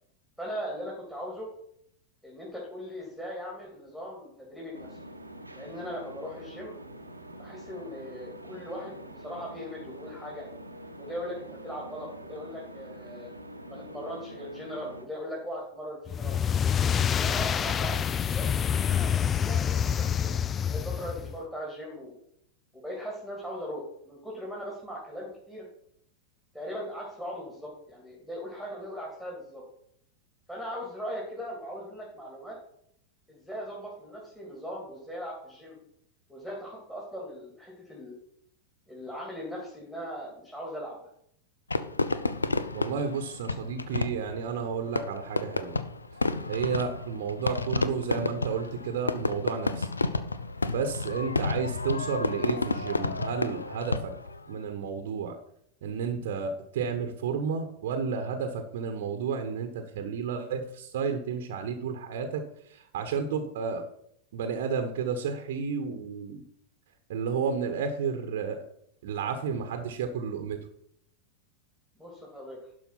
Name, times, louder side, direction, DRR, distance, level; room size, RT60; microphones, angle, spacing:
voice 1, 0.4-1.5 2.2-5.0 5.5-6.7 7.4-10.5 11.0-13.3 13.6-16.4 17.1-18.0 18.3-22.1 22.7-25.7 26.5-29.6 30.5-32.6 33.3-35.8 36.3-38.1 38.9-41.0 72.0-72.6, equal, 5° left, -4 dB, 2.8 m, -39 dB
sound 1, 4.7-15.1, right 1 dB, 85° right, 1.0 m, -45 dB
sound 2, 16.1-21.4, left 8 dB, 25° left, 0.3 m, -27 dB
Fireworks, 41.7-54.4, left 3 dB, 80° left, 0.6 m, -31 dB
voice 2, 42.7-45.8 46.5-49.9 50.7-54.1 54.5-55.4 55.8-62.4 62.7-63.8 64.3-66.4 67.1-68.6 69.0-70.6, right 6 dB, 55° right, 7 dB, 1.1 m, -31 dB
11.5 x 5.1 x 5.8 m, 0.73 s
figure-of-eight pair, 90°, 0 cm